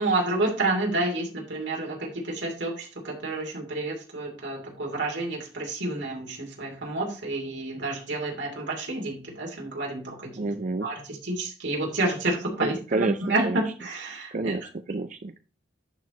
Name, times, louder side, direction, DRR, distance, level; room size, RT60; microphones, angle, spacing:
voice 1, 0.0-10.3 10.8-14.5, right 2 dB, 80° right, 0 dB, 2.7 m, -29 dB
voice 2, 10.4-10.9 12.6-13.6 14.3-15.3, right 3 dB, 45° right, 8 dB, 0.5 m, -29 dB
10.5 x 4.7 x 4.2 m, 0.36 s
head